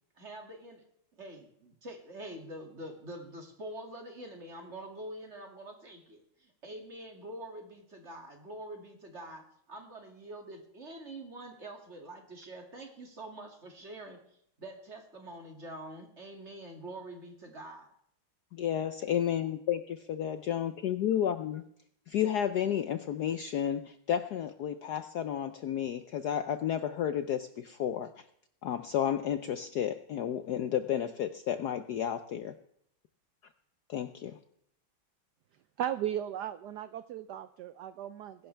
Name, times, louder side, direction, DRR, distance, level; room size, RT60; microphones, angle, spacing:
voice 1, 0.2-0.8 1.1-14.2 14.6-17.9, right 1 dB, 30° right, 3 dB, 2.5 m, -45 dB
voice 2, 18.5-21.7 22.1-28.2 28.6-32.5 33.9-34.4, left 10 dB, 70° left, 10 dB, 1.0 m, -32 dB
voice 3, 35.8-38.5, right 10 dB, 70° right, 12 dB, 1.0 m, -36 dB
21.5 x 11.5 x 3.4 m, 0.70 s
omnidirectional pair, 2.3 m